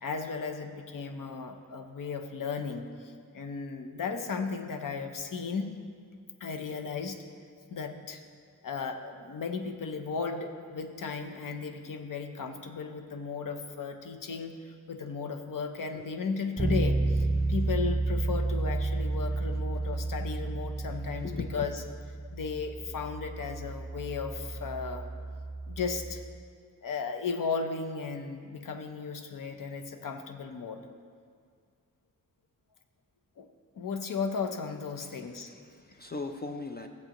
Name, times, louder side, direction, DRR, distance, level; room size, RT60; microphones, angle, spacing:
voice 1, 0.0-5.7 6.4-7.2 7.7-8.2 8.6-21.7 22.3-25.1 25.7-26.2 26.8-30.9 33.4-33.5 33.8-35.5, left 5 dB, 65° left, 6 dB, 0.8 m, -35 dB
Bass guitar, 16.6-26.4, right 2 dB, 15° right, 0.7 m, -31 dB
voice 2, 21.2-21.7 35.0-36.9, left 4 dB, 30° left, 5 dB, 0.4 m, -39 dB
15.0 x 7.8 x 3.0 m, 2.1 s
wide cardioid pair, 140°, 35 cm